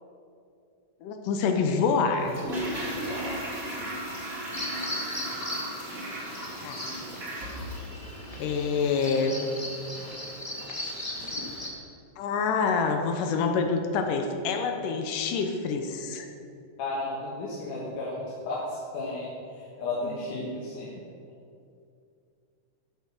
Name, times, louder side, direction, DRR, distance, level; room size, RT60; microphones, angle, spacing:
voice 1, 1.0-2.4 6.6-6.9 8.4-9.4 12.2-16.3 20.0-20.2, left 5 dB, 90° left, 5 dB, 2.5 m, -27 dB
Toilet flush, 2.2-9.3 9.5-9.6, right 1 dB, 30° right, 2.4 m, -36 dB
voice 2, 3.0-3.4 16.8-20.9, left 2 dB, 75° left, -6 dB, 3.1 m, -34 dB
Bird vocalization bird call bird song, 4.5-11.7, left 1 dB, 20° left, 1.0 m, -37 dB
12.5 x 7.5 x 6.0 m, 2.4 s
omnidirectional pair, 3.7 m